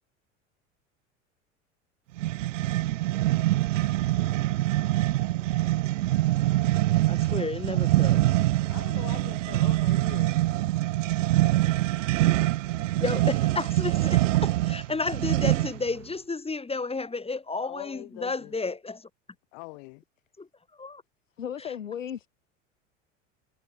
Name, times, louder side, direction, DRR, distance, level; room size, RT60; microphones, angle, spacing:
sound 1, 2.2-15.9, right 16 dB, 75° right, 1.5 m, -24 dB
voice 1, 7.1-8.2 13.0-19.1 20.4-20.5 20.8-21.0 21.6-21.7, left 3 dB, 15° left, 5.1 m, -32 dB
voice 2, 8.7-10.4 17.6-18.6 19.5-20.0, left 30 dB, 65° left, 6.3 m, -43 dB
voice 3, 21.4-22.3, left 9 dB, 85° left, 6.5 m, -35 dB
hypercardioid pair, 80°, 38 cm